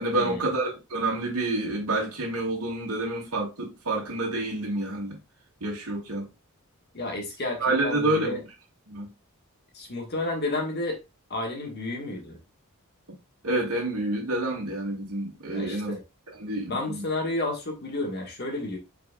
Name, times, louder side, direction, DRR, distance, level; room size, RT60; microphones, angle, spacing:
voice 1, 0.0-5.2 5.6-6.3 7.6-8.4 8.9-9.1 13.4-15.9 16.4-17.0, right 2 dB, 85° right, 2.0 m, -28 dB
voice 2, 6.9-8.4 9.7-11.0 11.3-12.4 15.5-16.0 16.7-18.8, left 2 dB, 45° left, 1.5 m, -31 dB
5.1 x 4.4 x 2.3 m
head